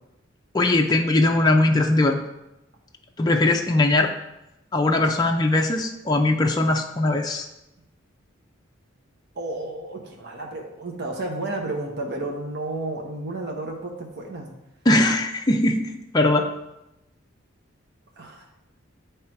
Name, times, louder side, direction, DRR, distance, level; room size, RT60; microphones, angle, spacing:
voice 1, 0.5-2.2 3.2-4.1 4.7-7.5 14.9-16.5, left 2 dB, 20° left, 2 dB, 0.4 m, -20 dB
voice 2, 9.3-14.5 18.2-18.4, right 2 dB, 55° right, 0 dB, 1.0 m, -32 dB
8.7 x 3.2 x 4.6 m, 0.90 s
head